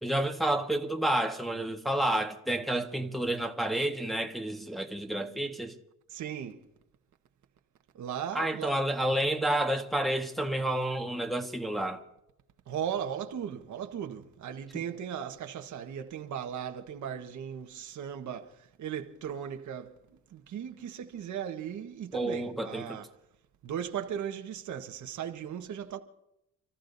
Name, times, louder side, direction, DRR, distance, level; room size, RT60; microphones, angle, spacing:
voice 1, 0.0-5.7 8.3-12.0 14.7-14.8 22.1-23.0, right 1 dB, ahead, 1.6 m, -30 dB
voice 2, 6.1-6.6 7.9-8.7 12.7-23.1 23.6-26.0, right 8 dB, 70° right, 1.5 m, -37 dB
30.0 x 14.0 x 2.7 m
cardioid pair, 90°, 30 cm